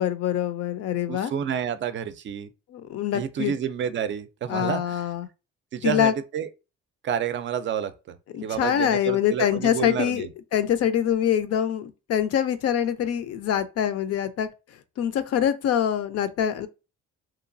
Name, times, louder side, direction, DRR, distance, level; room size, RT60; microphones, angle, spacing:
voice 1, 0.0-1.3 2.7-3.5 4.5-5.3 5.8-6.1 8.3-10.3 10.5-14.5 15.0-16.7, left 9 dB, 55° left, 0.5 m, -24 dB
voice 2, 1.1-2.5 3.1-5.0 5.7-6.5 7.0-8.2 8.4-10.3, right 8 dB, 40° right, 0.4 m, -29 dB
2.9 x 2.3 x 2.5 m
supercardioid pair, 75°, 29 cm